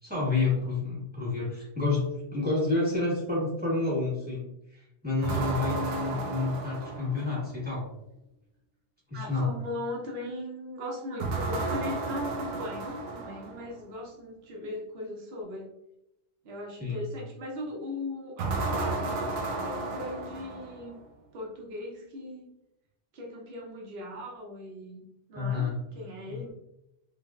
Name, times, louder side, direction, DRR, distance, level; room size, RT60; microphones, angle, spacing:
voice 1, 0.0-7.8 9.1-9.5 16.8-17.0 25.3-25.8 26.3-26.5, left 3 dB, 10° right, -7 dB, 1.2 m, -29 dB
sound 1, 5.2-7.6 11.2-13.7 18.4-21.0, right 3 dB, 85° right, 0.9 m, -33 dB
voice 2, 9.1-15.7 16.4-21.0 21.3-22.5 23.1-25.0 25.3-25.6 25.9-26.5, left 1 dB, 60° right, -1 dB, 1.0 m, -38 dB
3.2 x 2.5 x 2.3 m, 0.85 s
omnidirectional pair, 1.2 m